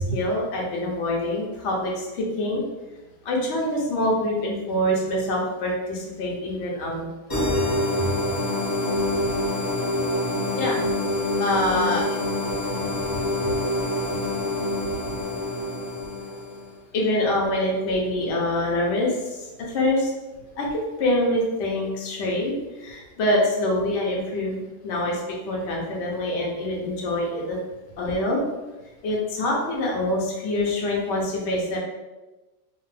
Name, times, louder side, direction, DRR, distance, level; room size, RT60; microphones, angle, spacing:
voice 1, 0.0-2.6 3.2-7.1 10.6-10.8 11.4-12.0 16.9-20.1 20.6-27.6 28.0-28.4 29.0-31.8, left 1 dB, 55° left, -2 dB, 0.8 m, -25 dB
sound 1, 7.3-16.7, left 1 dB, 35° left, 0.3 m, -26 dB
voice 2, 8.0-10.6 11.2-11.4 12.5-15.5, right 1 dB, 85° left, -1 dB, 1.3 m, -38 dB
2.5 x 2.4 x 3.2 m, 1.1 s
omnidirectional pair, 1.8 m